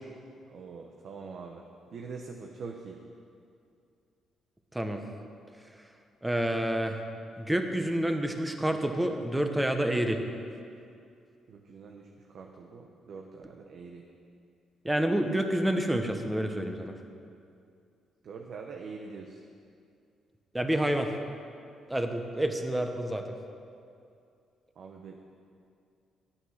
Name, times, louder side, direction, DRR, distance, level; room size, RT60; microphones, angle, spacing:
voice 1, 0.5-1.6 1.9-3.0 11.5-14.0 18.2-19.4 24.8-25.2, right 4 dB, 60° right, 2 dB, 1.0 m, -44 dB
voice 2, 6.2-7.0 7.4-10.2 14.8-16.9 20.5-21.1 21.9-23.4, right 1 dB, 10° right, 5 dB, 1.2 m, -28 dB
11.5 x 9.1 x 6.5 m, 2.4 s
cardioid pair, 90°, 0 cm